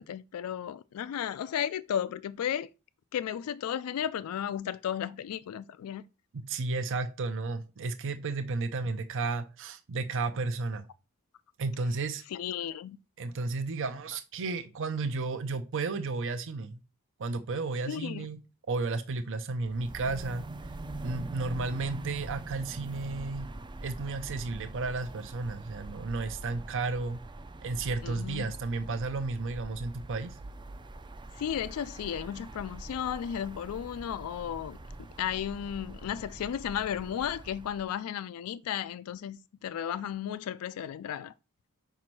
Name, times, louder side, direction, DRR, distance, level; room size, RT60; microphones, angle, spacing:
voice 1, 0.0-2.7 3.1-6.0 12.3-13.0 17.9-18.3 28.0-28.4 31.4-34.8 35.2-41.3, left 9 dB, 75° left, 0.3 m, -34 dB
voice 2, 6.3-10.9 11.6-12.2 13.2-16.8 17.2-18.4 18.7-20.5 21.0-23.5 23.8-27.2 27.6-30.4, right 3 dB, 60° right, 0.6 m, -33 dB
sound 1, 19.6-37.9, right 2 dB, 20° right, 0.4 m, -44 dB
5.2 x 4.6 x 6.0 m
head